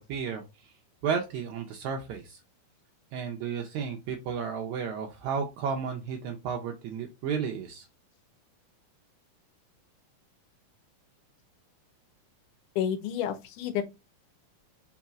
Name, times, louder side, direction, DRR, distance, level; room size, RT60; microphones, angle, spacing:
voice 1, 0.1-0.7 1.0-2.4 3.1-7.9, right 6 dB, 75° right, 1.9 m, -33 dB
voice 2, 12.8-13.8, left 9 dB, 80° left, 2.2 m, -30 dB
4.8 x 4.2 x 2.3 m
omnidirectional pair, 3.6 m